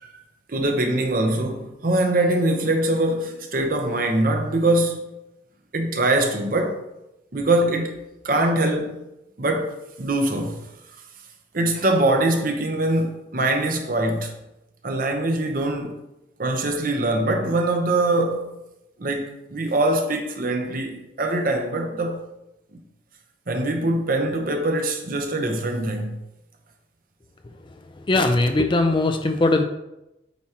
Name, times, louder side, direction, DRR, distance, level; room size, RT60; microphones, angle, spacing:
voice 1, 0.5-5.0 5.7-6.8 7.3-8.0 8.2-9.0 9.4-10.6 11.5-14.3 14.8-16.0 16.4-18.5 19.0-22.2 23.5-26.2, right 2 dB, 50° right, 0.9 m, -23 dB
voice 2, 27.6-29.6, left 2 dB, 25° left, 0.5 m, -21 dB
8.3 x 4.6 x 2.9 m
head